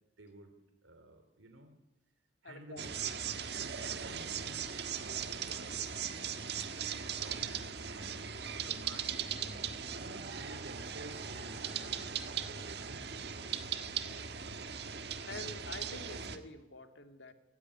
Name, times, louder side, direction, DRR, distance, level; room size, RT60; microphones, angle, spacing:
voice 1, 0.2-1.7 2.4-4.7 5.0-8.2 8.6-9.7 9.9-13.1 14.4-14.7, right 1 dB, 85° right, 7 dB, 2.9 m, -53 dB
voice 2, 2.4-2.8 13.8-14.4 15.3-17.3, left 2 dB, 70° left, 7 dB, 2.2 m, -48 dB
sound 1, 2.8-16.4, right 7 dB, 55° right, 1.6 m, -39 dB
Race car auto racing, 9.1-14.3, right 2 dB, 35° right, 3.4 m, -55 dB
26.5 x 15.0 x 9.8 m, 1.0 s
head